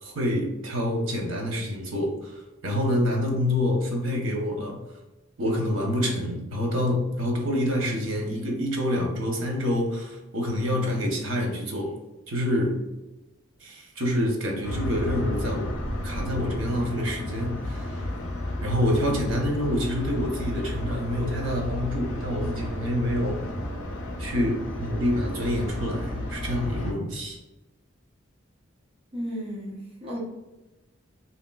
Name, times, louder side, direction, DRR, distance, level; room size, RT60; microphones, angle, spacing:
voice 1, 0.0-4.8 5.4-11.9 12.3-12.8 13.6-15.7 16.0-18.0 18.6-23.4 24.2-27.4, left 1 dB, 85° right, 0 dB, 0.8 m, -27 dB
sound 1, 14.6-26.9, left 1 dB, 80° left, 0.5 m, -32 dB
voice 2, 29.1-30.2, equal, 30° right, -5 dB, 0.6 m, -34 dB
2.9 x 2.8 x 2.2 m, 1.0 s
head